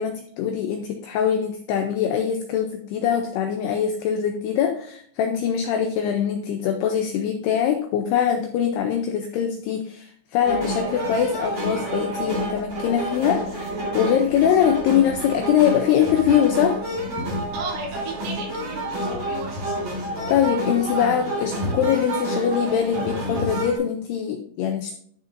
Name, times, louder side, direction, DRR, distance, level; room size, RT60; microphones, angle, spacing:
voice 1, 0.0-16.8 20.3-25.0, left 8 dB, 80° left, 6 dB, 2.3 m, -23 dB
sound 1, 10.4-23.8, right 1 dB, 40° right, 4.5 m, -29 dB
voice 2, 17.5-19.6, right 3 dB, 80° right, -2 dB, 4.6 m, -35 dB
12.5 x 5.9 x 2.6 m, 0.64 s
omnidirectional pair, 5.4 m